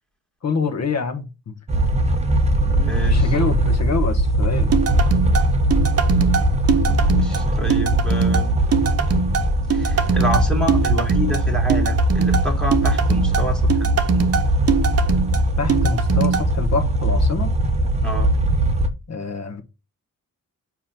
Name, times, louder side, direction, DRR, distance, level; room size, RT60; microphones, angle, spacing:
voice 1, 0.4-1.5 3.1-4.7 15.6-17.5 19.1-19.6, left 4 dB, 50° left, 1.1 m, -26 dB
sound 1, 1.7-18.9, right 1 dB, 20° right, 0.8 m, -20 dB
voice 2, 2.3-3.3 6.8-8.6 9.7-14.1 18.0-18.3, left 1 dB, ahead, 1.5 m, -29 dB
sound 2, 4.7-16.4, right 6 dB, 45° right, 0.8 m, -22 dB
7.1 x 3.0 x 5.8 m
wide cardioid pair, 160°, 33 cm